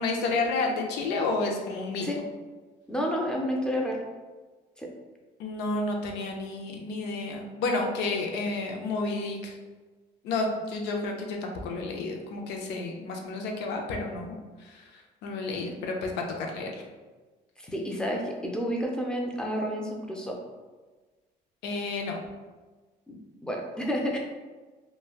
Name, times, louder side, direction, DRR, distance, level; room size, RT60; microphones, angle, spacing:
voice 1, 0.0-2.2 5.4-9.6 10.2-16.8 21.6-22.2, left 3 dB, 85° left, 2 dB, 0.5 m, -31 dB
voice 2, 2.9-4.0 4.8-4.9 17.6-20.4 23.1-23.2 23.4-24.2, equal, 5° left, 0 dB, 0.5 m, -30 dB
3.1 x 2.2 x 2.3 m, 1.3 s
cardioid pair, 110°, 17 cm